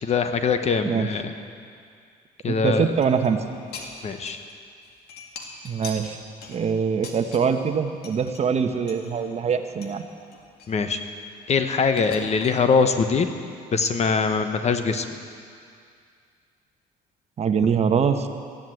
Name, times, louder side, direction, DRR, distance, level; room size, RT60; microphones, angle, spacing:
voice 1, 0.0-1.3 2.4-2.8 4.0-4.4 10.7-11.0 11.5-13.3 13.7-15.0, left 5 dB, 40° left, 8 dB, 1.0 m, -22 dB
voice 2, 2.4-3.4 5.6-6.2 6.5-10.0 17.4-18.3, right 6 dB, 40° right, 7 dB, 1.0 m, -23 dB
sound 1, 2.9-4.6 4.8-7.7 8.0-8.4 8.9-10.0 10.3-11.5 12.0-12.6, left 4 dB, 70° left, 2.1 m, -42 dB
14.5 x 11.0 x 7.8 m, 2.3 s
cardioid pair, 110°, 17 cm